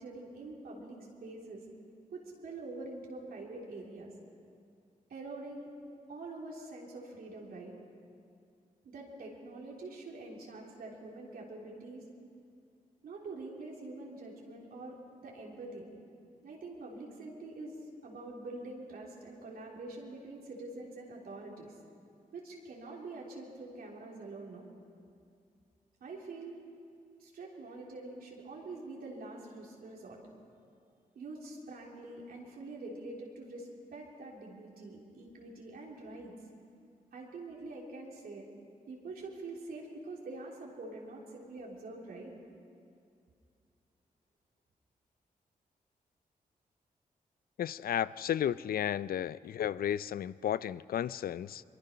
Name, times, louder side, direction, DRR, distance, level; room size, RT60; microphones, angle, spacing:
voice 1, 0.0-1.6 2.1-4.1 5.1-5.7 6.1-7.7 8.8-12.0 13.0-15.9 16.4-17.8 18.0-21.7 22.3-24.6 26.0-26.6 27.2-30.2 31.2-36.3 37.1-38.5 38.9-42.3, right 2 dB, 85° right, -2 dB, 3.6 m, -45 dB
voice 2, 47.6-51.6, left 10 dB, 75° left, 18 dB, 0.4 m, -33 dB
22.5 x 22.5 x 5.7 m, 2.4 s
cardioid pair, 60°, 15 cm